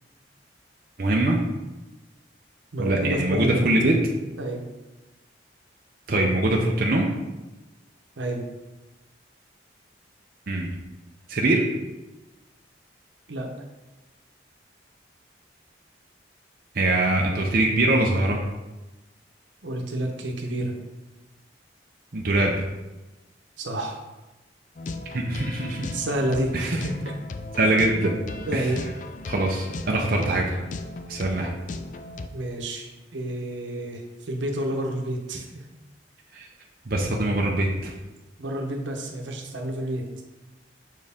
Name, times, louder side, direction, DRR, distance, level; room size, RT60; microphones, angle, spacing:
voice 1, 1.0-1.4 2.8-3.9 6.1-7.1 10.5-10.7 11.3-11.6 16.7-18.4 22.1-22.7 25.1-25.9 26.5-26.8 27.6-28.1 28.5-28.7 29.3-30.6 31.1-31.5 36.3-36.5 36.9-37.9, right 2 dB, 50° right, -1 dB, 0.6 m, -23 dB
voice 2, 2.7-3.6 4.4-4.6 8.2-8.4 13.3-13.5 19.6-20.7 23.6-24.0 25.9-27.2 28.5-28.8 32.3-35.6 38.4-40.1, right 1 dB, 85° right, 2 dB, 0.9 m, -29 dB
sound 1, 24.8-32.3, left 2 dB, 40° left, 0.3 m, -37 dB
6.2 x 4.6 x 3.6 m, 1.1 s
head